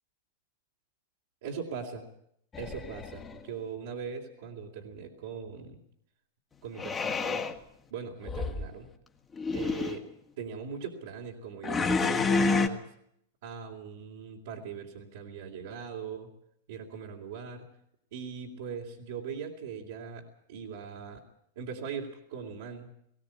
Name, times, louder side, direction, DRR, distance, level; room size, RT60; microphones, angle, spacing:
voice 1, 1.4-2.1 2.6-5.8 6.6-7.5 7.9-8.9 9.5-10.1 10.4-12.8 13.4-16.3 16.7-17.7 18.1-21.2 21.5-22.9, right 6 dB, 70° right, -3 dB, 3.1 m, -40 dB
sound 1, 2.5-3.4 6.8-7.6 8.2-8.7 9.3-10.0 11.6-12.7, left 4 dB, 20° left, 1.7 m, -29 dB
19.5 x 17.5 x 8.5 m, 0.71 s
hypercardioid pair, 115°, 0 cm